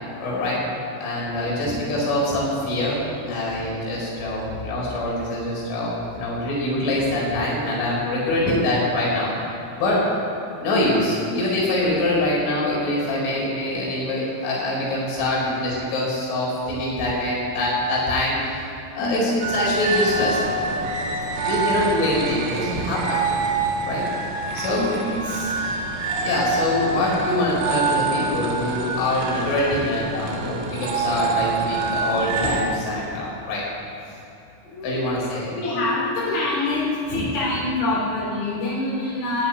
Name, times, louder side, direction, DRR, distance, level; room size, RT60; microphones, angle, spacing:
voice 1, 0.2-0.6 1.0-3.0 3.3-9.3 9.8-10.0 10.5-18.4 18.9-20.4 21.4-23.2 23.9-24.1 24.5-24.9 26.2-33.6 34.8-35.5 37.1-37.3, left 1 dB, 70° left, -5 dB, 6.8 m, -24 dB
voice 2, 1.5-1.8 19.0-19.5 24.7-25.6 34.7-35.2 35.5-39.5, left 2 dB, 85° left, -8 dB, 6.3 m, -26 dB
sound 1, 19.4-32.6, right 3 dB, 70° right, 3.8 m, -26 dB
15.5 x 8.7 x 9.8 m, 2.9 s
omnidirectional pair, 6.0 m